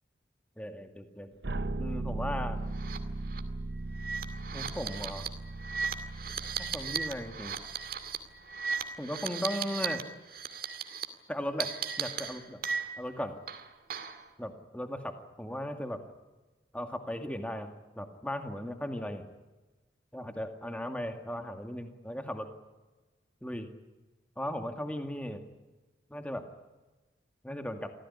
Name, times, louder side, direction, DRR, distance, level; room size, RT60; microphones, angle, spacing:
voice 1, 0.6-1.3 1.8-2.6 4.5-5.3 6.6-7.6 9.0-10.0 11.3-11.7 12.0-12.6 13.0-13.4 14.4-16.0 16.7-17.7 18.0-19.3 20.1-22.5 23.4-23.7 24.4-25.4 26.1-26.4 27.4-27.9, equal, 5° left, 6 dB, 2.1 m, -37 dB
sound 1, 1.4-8.4, right 2 dB, 65° right, 0.8 m, -38 dB
sound 2, 2.7-3.0 3.3-3.4 3.9-10.0 10.3-11.0 11.6-13.1 13.5-14.2, right 6 dB, 50° right, 2.3 m, -36 dB
25.0 x 17.0 x 9.8 m, 1.1 s
head